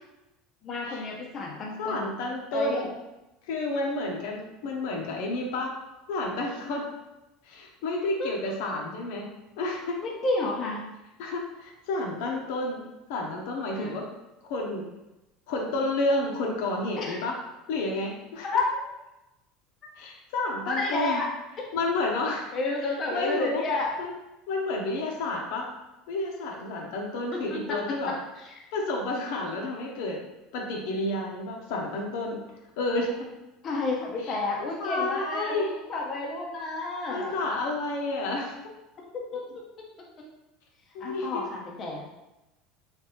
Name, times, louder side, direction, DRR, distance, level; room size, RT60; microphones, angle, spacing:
voice 1, 0.6-2.1 2.5-2.9 8.2-8.5 10.0-10.8 13.7-14.1 17.0-17.2 18.4-18.8 20.6-21.3 22.3-24.0 27.3-28.7 33.6-37.4 39.1-39.9 41.0-42.0, left 3 dB, 30° left, -2 dB, 0.6 m, -31 dB
voice 2, 1.8-2.9 3.5-5.7 6.1-6.9 7.5-9.3 9.6-10.0 11.2-12.8 13.1-14.0 14.5-14.9 15.5-17.4 17.7-18.5 20.0-21.2 21.7-22.5 23.1-23.6 24.0-24.1 24.5-25.7 26.1-28.2 28.7-30.2 30.5-32.4 32.8-33.1 34.3-35.7 37.1-38.5 40.9-41.4, left 2 dB, 70° left, 0 dB, 0.8 m, -30 dB
3.5 x 3.2 x 2.9 m, 0.98 s
cardioid pair, 160°, 0 cm